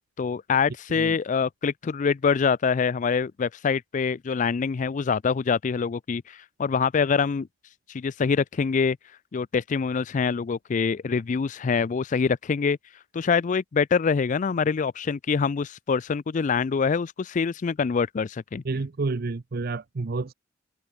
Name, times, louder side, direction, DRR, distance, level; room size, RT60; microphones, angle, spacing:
voice 1, 0.2-7.5 7.9-9.0 9.3-12.8 13.1-18.6, left 5 dB, 40° left, 0.4 m, -25 dB
voice 2, 18.7-20.3, right 3 dB, 55° right, 0.6 m, -29 dB
head